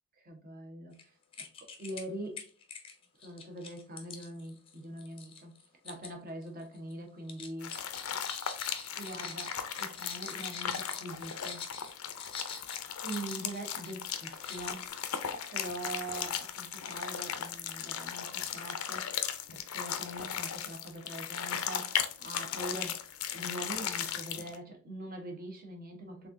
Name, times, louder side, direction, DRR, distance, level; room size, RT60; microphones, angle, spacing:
voice 1, 0.2-1.1 1.4-2.5 3.2-5.5 5.8-7.9 9.0-11.6 13.0-14.9 15.5-23.0 23.3-26.3, right 1 dB, 40° right, 3 dB, 1.0 m, -43 dB
sound 1, 0.9-1.0 1.3-2.1 2.4-6.1 6.4-6.9 7.3-13.9 14.2-14.9, left 5 dB, 25° left, 0.6 m, -46 dB
sound 2, 7.6-24.6, left 8 dB, 75° left, 0.5 m, -37 dB
4.1 x 3.5 x 2.6 m, 0.40 s
head